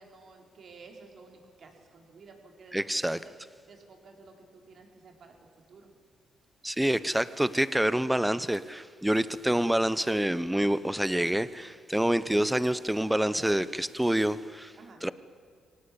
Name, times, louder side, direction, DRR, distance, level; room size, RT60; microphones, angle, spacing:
voice 1, 0.0-3.0 3.7-5.9 14.8-15.0, right 4 dB, 55° right, 4.3 m, -53 dB
voice 2, 2.7-3.2 6.6-14.7 15.0-15.1, right 1 dB, 5° right, 0.9 m, -27 dB
24.5 x 18.0 x 8.6 m
cardioid pair, 90°, 0 cm